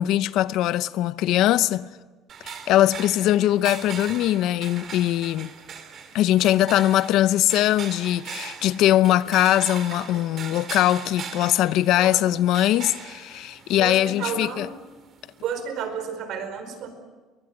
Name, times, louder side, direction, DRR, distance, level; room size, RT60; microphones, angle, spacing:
voice 1, 0.0-1.9 2.4-5.5 6.1-14.7, left 13 dB, 65° left, 0.7 m, -21 dB
sound 1, 2.3-15.5, right 7 dB, 40° right, 2.9 m, -40 dB
voice 2, 13.8-14.7 15.4-16.9, right 7 dB, 60° right, 4.7 m, -32 dB
23.0 x 19.5 x 9.2 m
cardioid pair, 145°, 0 cm